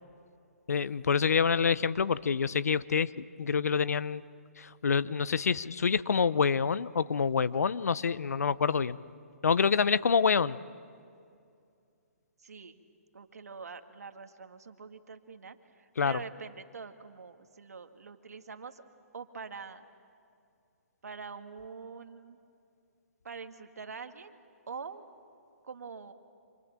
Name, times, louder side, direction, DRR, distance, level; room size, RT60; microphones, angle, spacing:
voice 1, 0.7-4.2 4.6-9.0 9.4-10.6 16.0-16.2, left 6 dB, 80° left, 17 dB, 0.8 m, -27 dB
voice 2, 12.4-12.8 13.1-18.8 19.1-19.8 21.0-22.4 23.2-24.4 24.7-25.1 25.6-26.1, right 5 dB, 80° right, 7 dB, 2.0 m, -44 dB
30.0 x 27.0 x 7.4 m, 2.4 s
hypercardioid pair, 150°, 8 cm